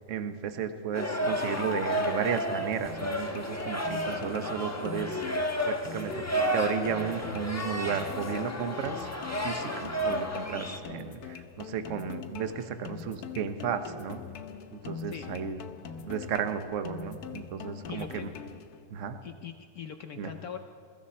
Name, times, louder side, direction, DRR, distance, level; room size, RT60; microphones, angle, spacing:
voice 1, 0.1-5.2 5.7-6.2 6.5-9.1 9.4-14.2 14.7-15.6 16.0-18.3 18.9-19.2 20.2-20.3, right 7 dB, 60° right, 9 dB, 0.8 m, -33 dB
sound 1, 0.9-10.8, equal, 10° left, 0.9 m, -32 dB
sound 2, 2.9-18.9, left 7 dB, 60° left, 1.1 m, -43 dB
voice 2, 17.9-18.3 19.2-20.6, left 8 dB, 80° left, 6 dB, 0.8 m, -41 dB
22.5 x 14.0 x 4.2 m, 2.5 s
omnidirectional pair, 2.3 m